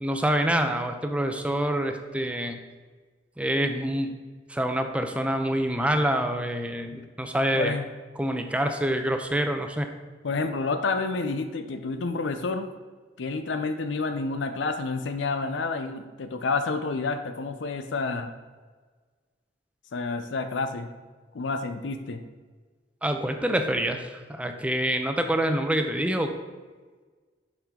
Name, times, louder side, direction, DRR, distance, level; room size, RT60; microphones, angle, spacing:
voice 1, 0.0-2.6 3.4-4.2 4.5-7.7 8.2-9.9 23.0-26.3, right 1 dB, 5° right, 6 dB, 0.5 m, -26 dB
voice 2, 7.6-7.9 10.2-12.7 13.2-18.3 19.9-20.9 21.3-22.2, left 3 dB, 80° left, 8 dB, 0.5 m, -29 dB
7.3 x 5.4 x 3.7 m, 1.4 s
head